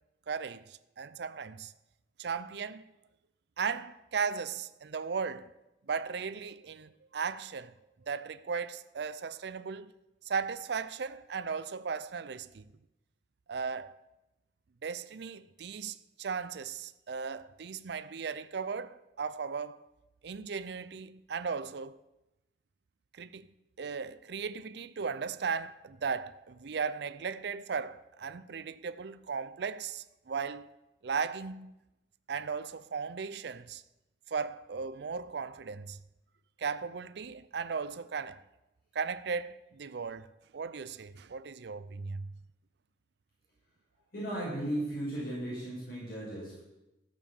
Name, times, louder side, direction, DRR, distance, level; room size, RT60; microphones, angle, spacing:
voice 1, 0.3-1.7 2.2-2.8 3.6-5.5 5.9-7.7 8.1-9.9 10.2-12.6 13.5-14.0 14.8-19.8 20.2-22.0 23.1-23.5 23.8-30.7 31.0-31.7 32.3-33.8 34.3-36.0 36.6-38.4 38.9-40.3 40.5-42.3, right 5 dB, 65° right, 0.5 m, -36 dB
voice 2, 44.1-46.6, right 1 dB, 60° left, 6.1 m, -36 dB
14.0 x 7.1 x 7.2 m
head